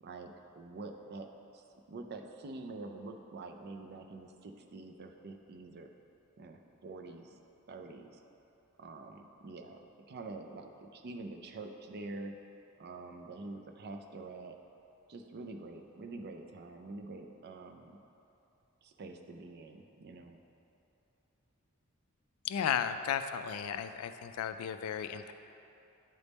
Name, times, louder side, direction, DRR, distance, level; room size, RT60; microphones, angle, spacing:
voice 1, 0.0-1.3 1.5-5.9 6.4-7.4 7.7-8.2 8.8-12.3 12.8-14.6 15.1-18.0 18.8-20.4, right 3 dB, 50° right, 5 dB, 0.4 m, -46 dB
voice 2, 22.4-25.3, left 8 dB, 75° left, 11 dB, 0.3 m, -34 dB
9.0 x 3.5 x 4.1 m, 2.8 s
head